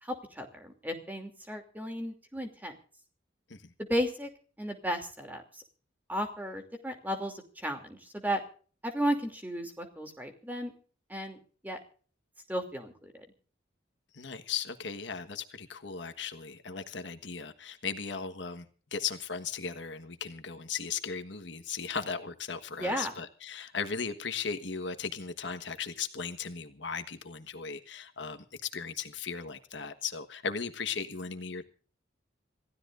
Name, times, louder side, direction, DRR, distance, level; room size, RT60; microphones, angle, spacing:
voice 1, 0.0-2.7 3.9-4.3 4.6-5.6 6.1-8.4 8.8-10.7 11.1-11.4 11.6-11.8 12.5-13.2 22.8-23.1, equal, 10° right, 4 dB, 2.8 m, -34 dB
voice 2, 14.1-18.6 18.9-31.6, left 6 dB, 70° left, 8 dB, 1.4 m, -37 dB
27.0 x 15.5 x 2.6 m, 0.41 s
head